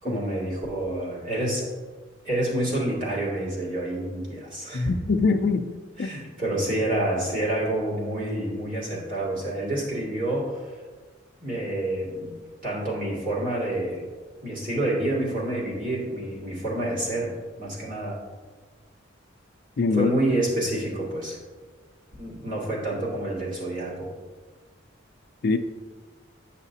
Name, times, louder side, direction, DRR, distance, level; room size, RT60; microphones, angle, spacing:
voice 1, 0.0-1.7 2.2-4.9 5.2-5.3 6.0-10.8 11.4-12.3 12.6-14.0 14.4-18.2 19.9-21.4 22.2-24.1, right 1 dB, 45° right, -6 dB, 2.1 m, -28 dB
voice 2, 4.7-5.7 6.0-6.1 19.8-20.1 25.4-25.6, left 4 dB, 55° left, 8 dB, 0.4 m, -23 dB
9.0 x 5.7 x 2.8 m, 1.4 s
head